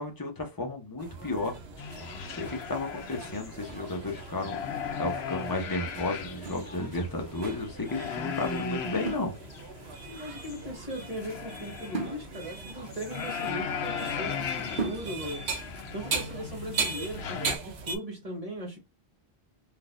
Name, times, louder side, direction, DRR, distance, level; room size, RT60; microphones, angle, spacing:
voice 1, 0.0-1.5 2.4-4.6 5.0-9.4, left 2 dB, 20° left, 0.8 m, -33 dB
sound 1, 1.0-18.0, right 4 dB, 90° right, 1.0 m, -39 dB
sound 2, 1.8-17.6, left 7 dB, 80° left, 0.9 m, -38 dB
sound 3, 6.4-7.4 9.0-10.0 11.9-13.9 14.8-15.5, right 4 dB, 55° right, 1.1 m, -39 dB
voice 2, 10.0-15.4 15.9-18.8, equal, 35° right, 1.7 m, -38 dB
3.8 x 2.7 x 2.5 m
omnidirectional pair, 1.1 m